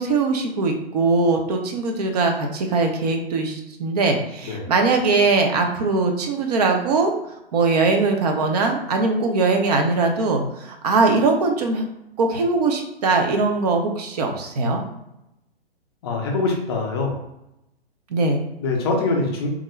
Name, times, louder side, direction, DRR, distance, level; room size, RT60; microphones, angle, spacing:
voice 1, 0.0-7.1 7.5-11.8 12.2-14.8 18.1-18.4, right 3 dB, 40° right, 3 dB, 0.6 m, -21 dB
voice 2, 16.0-17.2 18.6-19.5, left 3 dB, 25° left, 0 dB, 0.5 m, -24 dB
3.6 x 2.1 x 3.1 m, 0.86 s
figure-of-eight pair, 125°, 30 cm